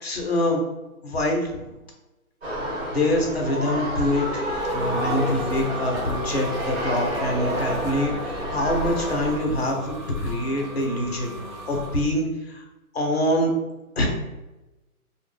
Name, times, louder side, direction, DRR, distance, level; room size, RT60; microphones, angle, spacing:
voice 1, 0.0-0.6 1.0-1.6 2.9-9.9 10.2-11.3 11.7-12.6 12.9-13.5 14.0-14.1, left 1 dB, 45° left, 1 dB, 0.7 m, -25 dB
sound 1, 2.4-9.4, equal, 45° right, 0.9 m, -29 dB
sound 2, 4.0-12.0, equal, ahead, 0.6 m, -37 dB
2.3 x 2.1 x 3.5 m, 1.0 s
hypercardioid pair, 170°, 44 cm